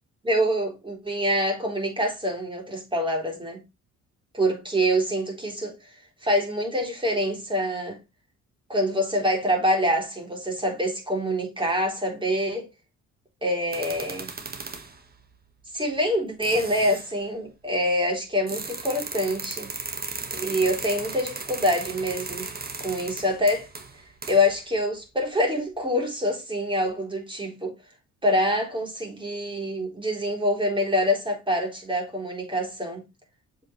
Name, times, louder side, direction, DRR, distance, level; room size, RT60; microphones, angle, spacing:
voice 1, 0.2-3.6 4.3-5.7 6.2-8.0 8.7-12.7 13.4-14.3 15.7-19.7 20.3-22.5 22.8-23.7 24.3-27.7 28.2-33.0, equal, 15° right, 3.9 m, -25 dB
sound 1, 13.7-15.0 15.9-16.0 16.4-17.1 18.5-24.6, right 4 dB, 30° right, 1.7 m, -36 dB
7.4 x 5.4 x 3.3 m
cardioid pair, 90°, 30 cm